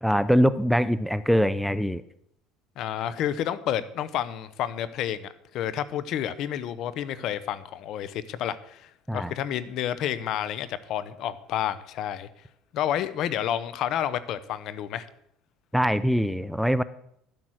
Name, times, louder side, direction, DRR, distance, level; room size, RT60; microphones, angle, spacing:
voice 1, 0.0-2.0 9.1-9.3 15.7-16.8, equal, ahead, 15 dB, 0.5 m, -23 dB
voice 2, 2.8-12.3 12.7-15.1, left 10 dB, 60° left, 15 dB, 0.9 m, -30 dB
12.0 x 7.6 x 6.4 m, 0.73 s
supercardioid pair, 100°, 0 cm